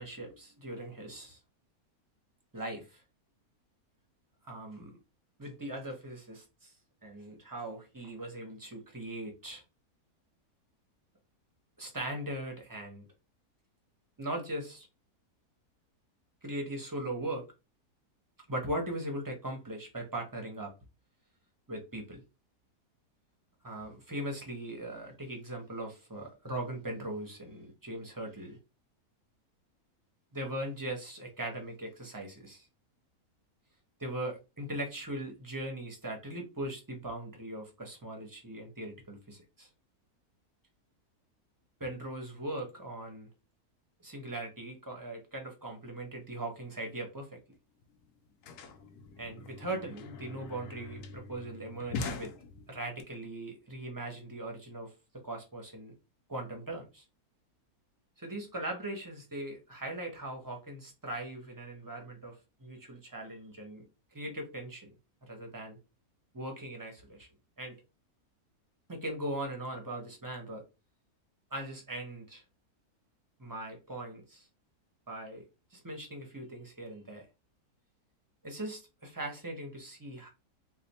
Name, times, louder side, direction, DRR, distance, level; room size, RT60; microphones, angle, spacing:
voice 1, 0.0-1.4 2.5-3.0 4.5-4.9 5.4-6.7 7.0-9.6 11.8-13.1 14.2-14.9 16.4-17.5 18.5-20.7 21.7-22.2 23.6-28.6 30.3-32.7 34.0-39.7 41.8-43.3 44.0-47.3 49.2-52.3 52.7-54.9 55.2-55.9 56.3-57.0 58.2-63.8 64.1-64.9 65.3-65.8 66.3-67.3 67.6-67.8 68.9-70.6 71.5-72.4 73.4-74.5 75.1-75.4 75.7-77.2 78.4-80.3, right 1 dB, 20° right, 0.7 m, -40 dB
sound 1, 47.5-47.6 47.8-53.0, left 4 dB, 85° left, 1.2 m, -43 dB
3.2 x 2.1 x 4.1 m
omnidirectional pair, 1.6 m